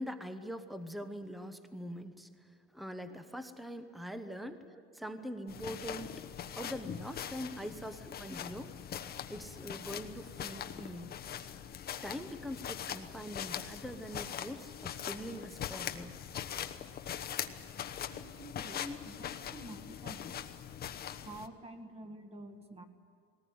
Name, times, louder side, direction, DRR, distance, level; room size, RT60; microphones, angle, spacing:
voice 1, 0.0-4.6 4.9-6.2 6.6-8.7 9.3-11.2 12.0-16.2 18.7-19.0, equal, ahead, 10 dB, 1.0 m, -43 dB
sound 1, 5.5-21.5, left 9 dB, 30° left, 1.0 m, -42 dB
voice 2, 18.1-20.3 21.3-22.9, right 1 dB, 20° right, 7 dB, 1.8 m, -49 dB
19.5 x 19.0 x 9.4 m, 2.2 s
supercardioid pair, 130°, 31 cm